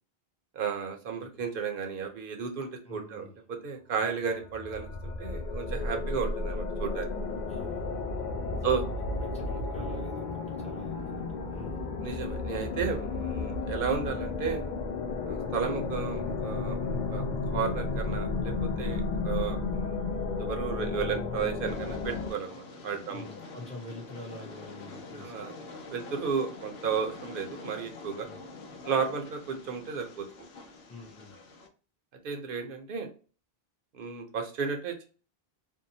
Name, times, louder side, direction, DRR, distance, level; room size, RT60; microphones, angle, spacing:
voice 1, 0.5-7.1 8.6-8.8 12.0-14.7 15.2-17.2 17.5-20.0 20.4-23.3 25.2-28.3 28.8-30.3 32.2-33.1 33.9-35.0, right 6 dB, 65° right, 4 dB, 0.8 m, -33 dB
voice 2, 2.9-3.4 4.0-4.1 5.9-6.1 7.5-8.0 8.5-11.9 20.8-21.0 23.1-25.5 28.2-28.4 30.9-31.4, left 2 dB, 10° left, 0 dB, 0.6 m, -46 dB
sound 1, 4.3-22.3, left 3 dB, 55° left, 0.6 m, -33 dB
Train, 21.7-31.7, left 3 dB, 80° left, 0.9 m, -46 dB
2.7 x 2.1 x 2.6 m, 0.37 s
omnidirectional pair, 1.0 m